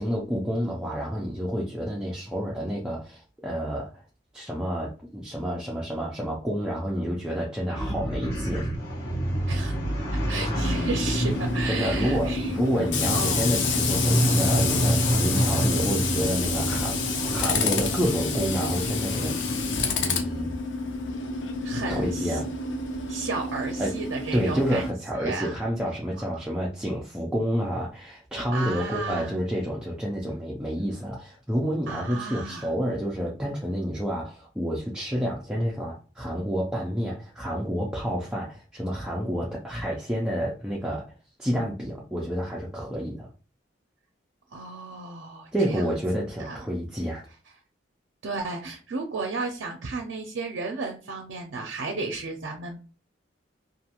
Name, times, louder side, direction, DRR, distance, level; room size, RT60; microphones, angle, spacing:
voice 1, 0.0-4.0 4.3-8.7 11.6-19.7 20.0-20.6 21.9-22.5 23.8-23.9 24.3-41.1 41.4-43.3 45.5-47.3, equal, 5° right, 0.4 m, -29 dB
sound 1, 7.7-19.9, right 1 dB, 55° left, 1.1 m, -28 dB
voice 2, 9.5-9.8 10.1-13.5 21.6-22.4 23.1-24.8 25.1-25.6 26.3-26.4 28.5-29.4 31.9-32.7 44.5-45.9 46.4-46.6 48.2-52.8, right 3 dB, 75° right, 0.5 m, -33 dB
Tools, 10.6-24.9, left 4 dB, 80° left, 0.6 m, -29 dB
2.5 x 2.3 x 2.8 m
head